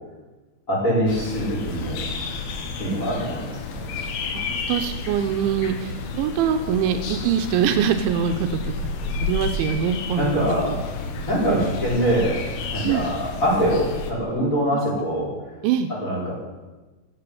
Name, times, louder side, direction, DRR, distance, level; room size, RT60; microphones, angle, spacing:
voice 1, 0.7-2.0 2.8-3.8 10.2-10.8 11.3-12.4 12.7-15.3 16.0-16.3, equal, 15° left, -6 dB, 5.9 m, -23 dB
sound 1, 1.1-14.1, left 4 dB, 80° left, 4.0 m, -31 dB
voice 2, 4.3-8.7 9.1-10.8 11.5-11.6 12.8-13.1 14.7-14.8 15.6-15.9, right 8 dB, 80° right, 7 dB, 3.1 m, -24 dB
15.0 x 8.9 x 8.4 m, 1.2 s
omnidirectional pair, 5.4 m